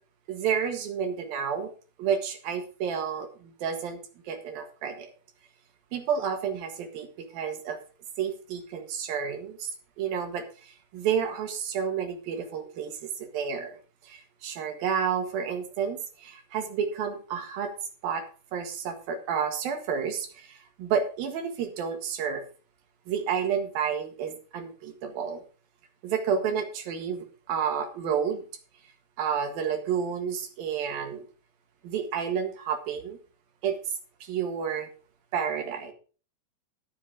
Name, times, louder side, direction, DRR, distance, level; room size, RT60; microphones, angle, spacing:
voice 1, 0.3-1.7 2.0-4.0 4.3-5.1 5.9-7.8 8.2-9.7 10.0-13.8 14.0-17.7 18.0-18.2 18.5-22.4 23.1-25.4 26.0-28.4 29.2-31.2 31.8-33.2 33.6-33.8 34.2-34.9 35.3-35.9, right 7 dB, 85° right, 6 dB, 3.5 m, -30 dB
13.0 x 7.2 x 4.9 m, 0.38 s
omnidirectional pair, 4.0 m